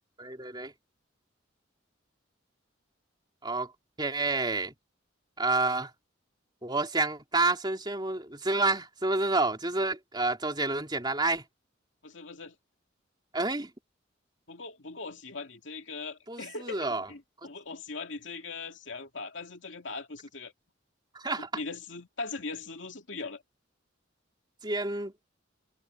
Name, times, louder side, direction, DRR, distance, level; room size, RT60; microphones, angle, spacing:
voice 1, 0.2-0.7 3.4-3.7 4.0-4.7 5.4-5.9 6.6-11.4 13.3-13.7 16.3-17.1 21.1-21.5 24.6-25.1, right 3 dB, 20° right, 3.4 m, -29 dB
voice 2, 12.0-12.6 14.5-20.5 21.4-23.4, left 3 dB, 70° left, 2.6 m, -40 dB
head